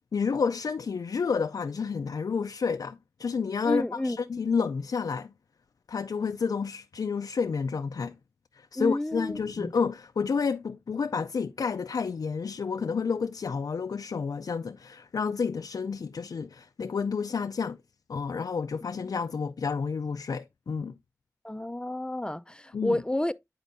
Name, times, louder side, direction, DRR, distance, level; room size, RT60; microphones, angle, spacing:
voice 1, 0.1-5.3 5.9-8.2 8.5-17.8 18.1-20.9 22.7-23.0, left 5 dB, 80° left, 0.4 m, -30 dB
voice 2, 3.6-4.2 8.8-9.7 19.0-19.1 21.4-23.3, left 1 dB, 15° left, 0.5 m, -30 dB
10.0 x 4.4 x 2.6 m
wide cardioid pair, 55°, 6 cm